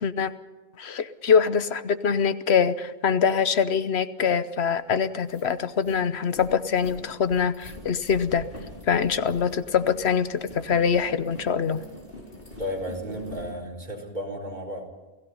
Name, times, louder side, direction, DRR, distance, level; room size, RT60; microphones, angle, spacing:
voice 1, 0.0-0.3 0.8-8.5 8.9-11.8, left 6 dB, 85° left, 12 dB, 1.2 m, -24 dB
sound 1, 4.7-4.8 5.1-13.5, left 1 dB, 55° left, 5.4 m, -44 dB
voice 2, 12.5-14.9, equal, 45° right, 2 dB, 4.2 m, -33 dB
28.5 x 17.5 x 5.6 m, 1.2 s
omnidirectional pair, 1.1 m